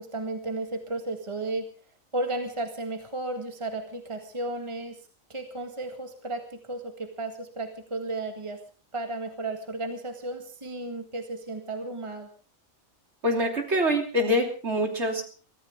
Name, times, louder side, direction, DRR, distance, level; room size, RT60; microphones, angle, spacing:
voice 1, 0.0-1.7 2.1-5.0 5.3-8.6 8.9-12.3, right 2 dB, 20° right, 5 dB, 1.9 m, -34 dB
voice 2, 13.2-15.2, equal, 55° right, 3 dB, 3.4 m, -25 dB
23.5 x 15.0 x 3.7 m, 0.38 s
omnidirectional pair, 1.4 m